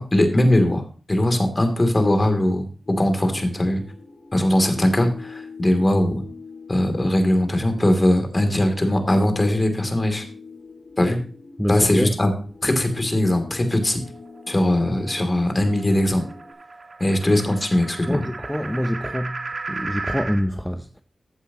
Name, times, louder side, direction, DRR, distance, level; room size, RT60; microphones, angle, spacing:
voice 1, 0.0-3.8 4.3-6.2 6.7-10.2 11.0-11.2 11.7-12.3 12.6-14.0 14.5-16.2 17.0-18.2, left 1 dB, 30° left, 2.9 m, -20 dB
sound 1, 2.8-16.5, left 4 dB, 65° left, 4.4 m, -43 dB
voice 2, 11.6-12.1 18.1-19.4 19.7-21.0, equal, 5° left, 0.6 m, -25 dB
sound 2, 13.7-20.4, right 3 dB, 60° right, 1.3 m, -36 dB
15.0 x 8.3 x 3.0 m
wide cardioid pair, 70°, 0 cm